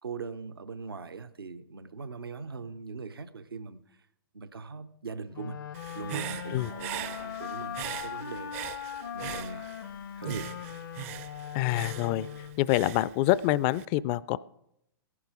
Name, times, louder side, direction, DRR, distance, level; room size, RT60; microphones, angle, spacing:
voice 1, 0.0-4.0 4.3-5.6 5.9-8.5 9.1-9.7 10.2-10.5, right 4 dB, 85° right, 0.8 m, -40 dB
sound 1, 5.3-12.8, left 9 dB, 65° left, 0.7 m, -40 dB
Human voice / Breathing, 5.7-9.9 10.2-13.8, right 15 dB, 40° right, 0.5 m, -41 dB
voice 2, 11.5-12.3 12.6-14.4, left 15 dB, 35° left, 0.4 m, -26 dB
17.0 x 11.0 x 4.9 m
figure-of-eight pair, 115°, 12 cm